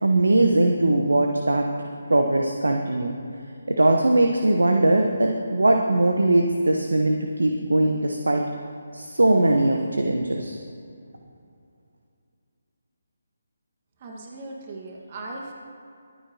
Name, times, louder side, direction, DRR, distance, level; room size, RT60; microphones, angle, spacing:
voice 1, 0.0-1.7 2.1-3.1 3.7-8.4 8.9-10.6, right 2 dB, 80° right, 3 dB, 1.0 m, -20 dB
voice 2, 14.0-15.5, right 2 dB, 35° right, -1 dB, 1.6 m, -38 dB
23.5 x 9.2 x 2.8 m, 2.5 s
figure-of-eight pair, 150°, 0 cm